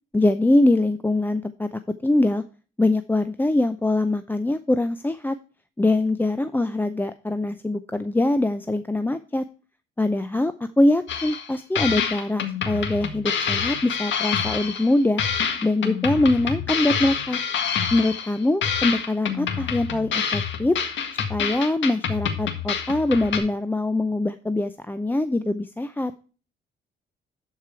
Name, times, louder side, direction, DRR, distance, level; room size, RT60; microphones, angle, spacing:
voice 1, 0.1-1.7 2.0-2.4 2.8-5.4 5.8-9.4 10.0-15.2 15.6-17.4 17.9-20.7 21.3-26.1, left 2 dB, 10° left, 10 dB, 0.5 m, -23 dB
sound 1, 11.1-11.5 11.7-14.9 15.2-18.3 18.6-23.4, left 7 dB, 70° left, 1.7 m, -27 dB
11.5 x 4.8 x 4.5 m, 0.36 s
cardioid pair, 90°, 20 cm